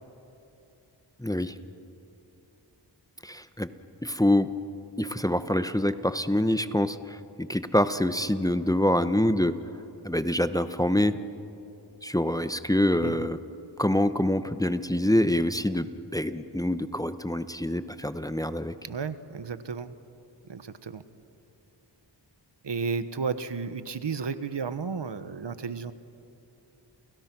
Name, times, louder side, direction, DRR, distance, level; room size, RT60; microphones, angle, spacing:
voice 1, 1.2-1.5 3.2-3.7 4.0-4.5 5.0-9.6 10.0-11.2 12.0-13.4 13.8-18.7, left 1 dB, 10° left, 11 dB, 0.9 m, -25 dB
voice 2, 18.8-19.9 20.5-21.0 22.6-25.9, right 5 dB, 70° right, 12 dB, 1.2 m, -33 dB
30.0 x 30.0 x 6.0 m, 2.8 s
wide cardioid pair, 70°, 44 cm